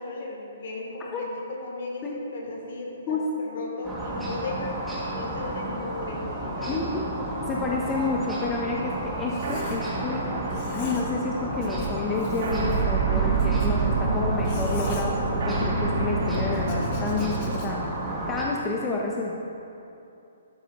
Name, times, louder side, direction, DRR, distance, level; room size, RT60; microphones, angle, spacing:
voice 1, 0.0-4.8 5.1-7.0, left 2 dB, 60° left, -1 dB, 2.9 m, -36 dB
voice 2, 3.1-3.6 6.7-7.0 7.5-10.2 10.7-19.3, left 3 dB, 20° left, -2 dB, 0.9 m, -30 dB
sound 1, 3.8-18.4, right 1 dB, 5° right, 2.3 m, -32 dB
sound 2, 7.7-17.4, right 4 dB, 60° right, 2.8 m, -28 dB
Writing, 8.3-10.2 10.4-11.3 11.5-15.7 16.3-18.0, left 1 dB, 40° left, 1.8 m, -42 dB
13.0 x 12.0 x 3.1 m, 2.7 s
hypercardioid pair, 145°, 0 cm